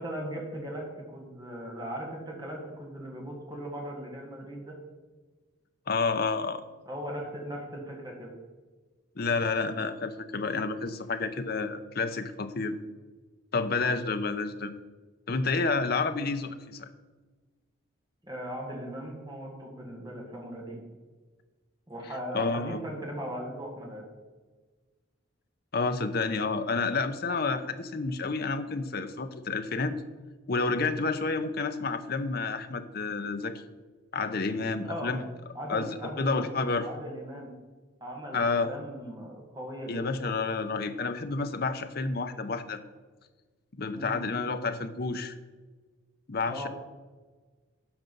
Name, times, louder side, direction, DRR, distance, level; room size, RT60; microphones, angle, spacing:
voice 1, 0.0-4.7 6.9-8.3 18.2-20.8 21.9-24.1 34.8-35.1 35.5-37.5 38.0-40.2 43.9-44.2 46.5-46.7, equal, 20° right, -1 dB, 1.9 m, -38 dB
voice 2, 5.9-6.6 9.2-12.8 13.5-14.7 15.3-16.9 22.3-22.8 25.7-29.9 30.5-33.6 34.1-35.2 35.7-35.9 36.2-36.9 38.3-38.7 39.9-42.8 43.8-45.4 46.3-46.7, left 4 dB, 50° left, 9 dB, 0.6 m, -29 dB
12.0 x 5.2 x 5.4 m, 1.3 s
head